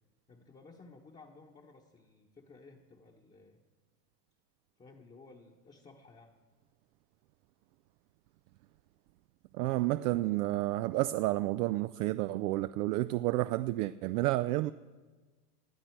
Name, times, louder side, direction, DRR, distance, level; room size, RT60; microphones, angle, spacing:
voice 1, 0.3-3.6 4.8-6.4, left 3 dB, 15° left, 1.1 m, -56 dB
voice 2, 9.5-14.7, right 17 dB, 70° right, 0.5 m, -30 dB
19.5 x 11.5 x 4.6 m
supercardioid pair, 125°, 49 cm